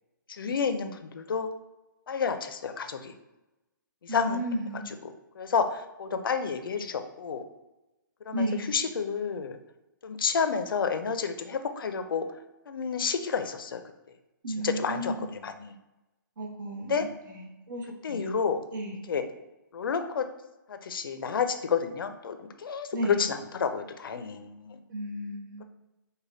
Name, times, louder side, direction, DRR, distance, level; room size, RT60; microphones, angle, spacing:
voice 1, 0.3-1.5 2.1-3.1 4.0-4.4 5.0-7.4 8.2-9.6 10.0-12.3 12.7-13.8 14.6-15.7 16.8-17.0 18.0-18.6 19.1-19.2 19.7-20.3 20.7-24.8, left 6 dB, 85° left, 8 dB, 0.4 m, -30 dB
voice 2, 4.1-4.9 8.3-8.7 14.4-15.3 16.4-18.4 18.7-19.0 22.9-23.2 24.9-25.6, equal, 65° right, -1 dB, 1.0 m, -33 dB
5.0 x 2.2 x 2.5 m, 1.0 s
hypercardioid pair, 165°, 11 cm